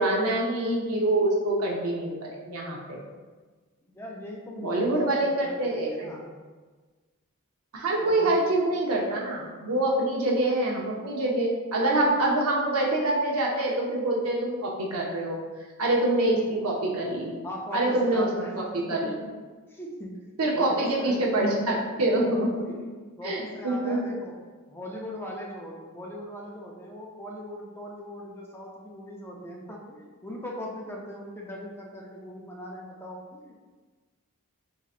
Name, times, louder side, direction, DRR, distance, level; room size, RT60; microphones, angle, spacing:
voice 1, 0.0-3.0 4.6-6.3 7.7-15.4 15.8-17.4 17.7-18.3 18.9-19.1 20.4-22.7 23.2-24.0, right 1 dB, 75° right, -2 dB, 0.7 m, -25 dB
voice 2, 3.9-6.3 8.0-8.4 17.4-19.3 19.7-20.2 20.5-21.1 22.3-22.8 23.2-24.4 24.7-33.6, equal, 10° left, -2 dB, 0.4 m, -40 dB
4.4 x 2.8 x 2.4 m, 1.4 s
head